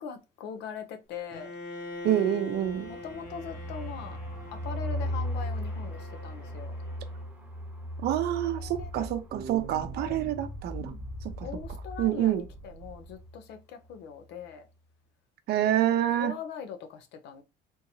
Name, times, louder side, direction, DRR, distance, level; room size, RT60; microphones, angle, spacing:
voice 1, 0.0-1.5 2.9-4.2 4.5-6.7 8.4-9.1 9.4-10.2 10.8-11.1 11.4-14.6 16.2-17.4, left 6 dB, 80° left, 0.7 m, -41 dB
Bowed string instrument, 1.3-7.3, left 2 dB, 55° left, 1.1 m, -44 dB
voice 2, 2.0-2.9 8.0-10.9 11.4-11.5 12.0-12.4 15.5-16.3, right 11 dB, 75° right, 0.6 m, -27 dB
sound 1, 2.7-12.3 12.5-12.7 12.9-13.4, equal, 10° right, 0.9 m, -38 dB
sound 2, 8.6-13.3, right 1 dB, 45° right, 0.8 m, -41 dB
3.6 x 2.8 x 2.7 m
cardioid pair, 110°, 17 cm